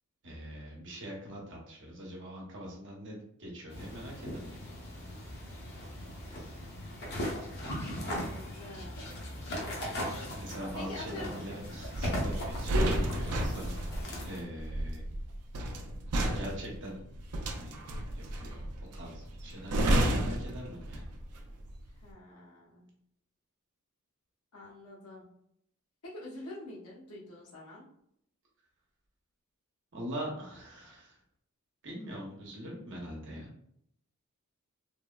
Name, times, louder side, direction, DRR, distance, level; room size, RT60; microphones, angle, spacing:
voice 1, 0.2-4.6 9.8-10.1 10.4-13.7 14.2-15.0 16.2-17.0 17.5-17.8 18.1-21.0 29.9-31.1 31.8-33.5, equal, 60° right, -2 dB, 0.9 m, -43 dB
sound 1, 3.7-14.4, equal, 50° left, 0.8 m, -39 dB
voice 2, 8.0-9.0 9.5-10.3 10.7-11.4 22.0-22.8 24.5-25.2 26.0-27.8, left 2 dB, 90° left, -4 dB, 0.9 m, -46 dB
sound 2, 12.0-21.3 21.6-21.9, right 1 dB, 90° right, 0.5 m, -31 dB
3.3 x 2.0 x 2.3 m, 0.72 s
head